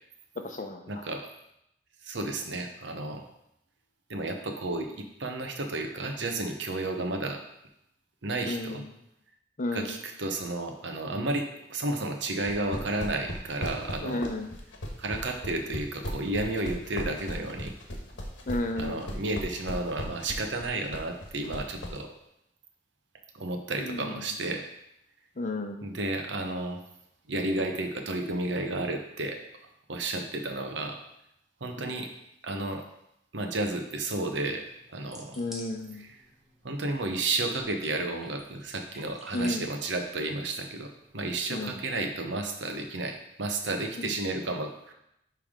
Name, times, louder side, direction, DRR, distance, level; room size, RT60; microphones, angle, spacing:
voice 1, 0.4-1.0 8.5-8.9 9.6-10.0 14.0-14.6 18.5-19.1 23.8-24.4 25.4-25.9 31.9-32.0 35.4-36.1 39.3-39.7 41.5-41.8 44.0-44.2, left 2 dB, 45° left, 5 dB, 0.6 m, -33 dB
voice 2, 0.9-1.3 2.0-3.3 4.1-7.4 8.2-8.8 9.7-14.2 15.0-17.7 18.8-22.1 23.3-24.6 25.8-26.8 27.3-29.4 29.9-31.0 31.6-32.1 32.4-32.9 33.3-34.6 34.9-35.4 36.6-44.9, right 2 dB, 75° right, 4 dB, 0.9 m, -32 dB
sound 1, 12.4-22.0, equal, 85° left, 1.2 m, -36 dB
sound 2, 34.3-41.8, equal, ahead, 0.9 m, -52 dB
10.0 x 3.4 x 3.7 m, 0.79 s
head